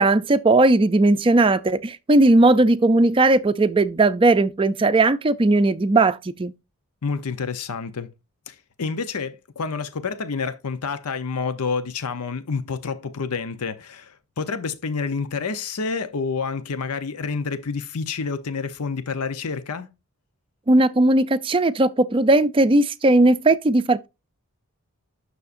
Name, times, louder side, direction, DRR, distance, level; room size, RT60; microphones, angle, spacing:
voice 1, 0.0-6.5 20.7-24.1, right 2 dB, 25° right, 0.4 m, -17 dB
voice 2, 7.0-8.1 8.5-19.9, left 5 dB, 85° left, 0.7 m, -28 dB
9.5 x 6.4 x 2.5 m
head